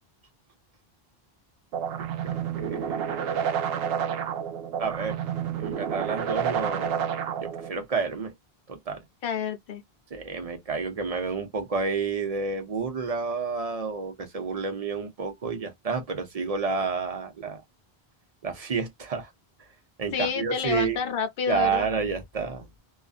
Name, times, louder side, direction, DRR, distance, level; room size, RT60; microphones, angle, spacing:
sound 1, 1.7-7.7, right 8 dB, 75° right, 0.8 m, -29 dB
voice 1, 2.2-3.2 4.8-5.2 5.6-7.0 7.4-8.3 8.7-9.0 10.1-17.6 18.4-19.3 20.0-21.0 21.5-22.8, right 5 dB, 40° right, 0.7 m, -30 dB
voice 2, 9.2-9.8 20.1-21.9, left 7 dB, 65° left, 0.8 m, -29 dB
2.5 x 2.3 x 2.3 m
omnidirectional pair, 1.0 m